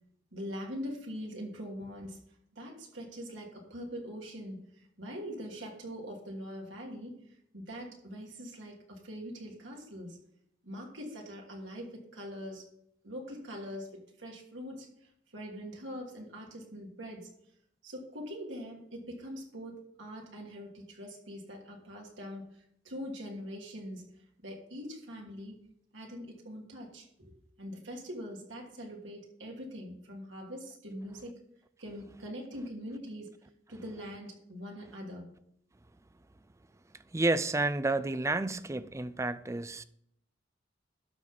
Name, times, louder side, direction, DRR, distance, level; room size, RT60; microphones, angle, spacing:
voice 1, 0.3-2.2 2.6-4.6 5.0-7.2 7.5-10.2 10.6-12.6 13.0-14.9 15.3-17.3 17.8-22.5 22.8-24.0 24.4-25.6 25.9-31.4 31.8-33.3 33.7-35.2, equal, 80° right, 2.7 m, -43 dB
voice 2, 37.1-39.8, right 2 dB, 15° right, 0.4 m, -30 dB
12.0 x 4.1 x 7.0 m
head